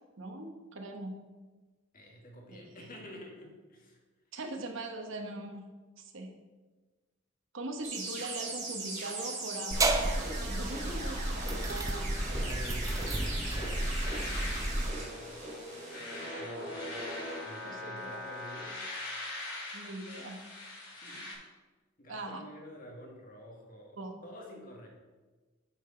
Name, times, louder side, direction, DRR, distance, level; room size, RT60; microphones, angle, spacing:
voice 1, 0.2-1.2 2.5-2.9 4.3-5.7 6.0-6.3 7.5-12.3 16.4-16.6 17.6-18.2 19.7-20.4 22.1-22.4 24.0-24.2, right 2 dB, 65° right, 4 dB, 1.1 m, -41 dB
voice 2, 1.9-4.0 12.3-13.5 14.4-15.5 16.4-17.1 17.4-18.8 21.0-21.3 22.0-24.9, equal, 45° left, 0 dB, 1.7 m, -49 dB
sound 1, 7.8-17.4, right 2 dB, 35° right, 2.3 m, -40 dB
sound 2, 9.7-14.9, right 1 dB, 15° right, 0.5 m, -32 dB
sound 3, 9.8-21.3, left 2 dB, 60° left, 2.9 m, -44 dB
8.9 x 4.8 x 5.0 m, 1.3 s
head